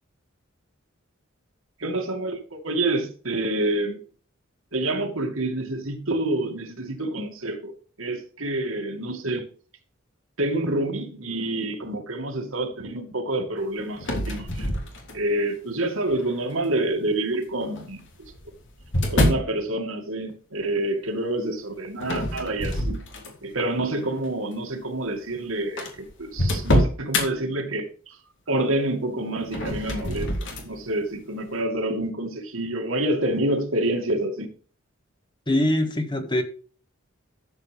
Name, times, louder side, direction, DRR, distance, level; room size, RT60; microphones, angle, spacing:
voice 1, 1.8-4.0 4.7-9.5 10.4-14.7 15.1-18.0 19.1-23.0 23.4-28.2 28.5-30.3 30.6-34.5, right 1 dB, 80° right, 2.5 m, -27 dB
sound 1, 14.0-15.4 16.1-16.5 17.6-19.5 22.0-23.6 24.0-24.3 25.1-25.2 25.3-25.4 25.8-27.3 29.4-30.7, left 1 dB, 65° left, 3.2 m, -26 dB
voice 2, 35.5-36.4, left 1 dB, 25° left, 1.9 m, -23 dB
13.5 x 7.6 x 3.6 m
head